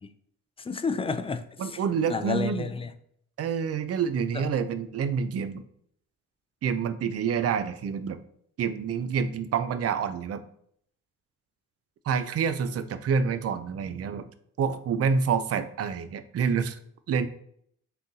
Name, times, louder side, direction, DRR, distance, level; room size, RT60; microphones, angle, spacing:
voice 1, 0.6-1.8 2.1-2.9 4.3-4.4, left 4 dB, 20° left, 0.3 m, -31 dB
voice 2, 1.6-2.7 3.4-5.6 6.6-8.2 8.6-10.4 12.1-14.2 14.6-16.8 17.1-17.3, right 6 dB, 45° right, 0.5 m, -27 dB
3.9 x 3.6 x 2.7 m
cardioid pair, 65°, 34 cm